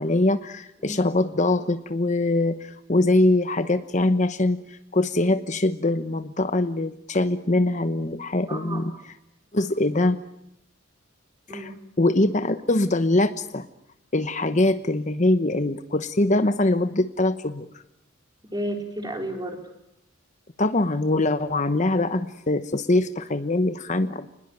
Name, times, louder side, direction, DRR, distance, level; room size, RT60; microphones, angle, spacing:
voice 1, 0.0-8.9 9.5-10.2 11.5-11.7 12.0-13.7 14.1-17.8 20.6-24.3, left 2 dB, 35° left, 11 dB, 1.0 m, -23 dB
voice 2, 8.5-9.0 11.5-11.8 18.5-19.6, right 1 dB, 20° right, 4 dB, 4.1 m, -32 dB
28.5 x 21.0 x 9.2 m, 0.83 s
head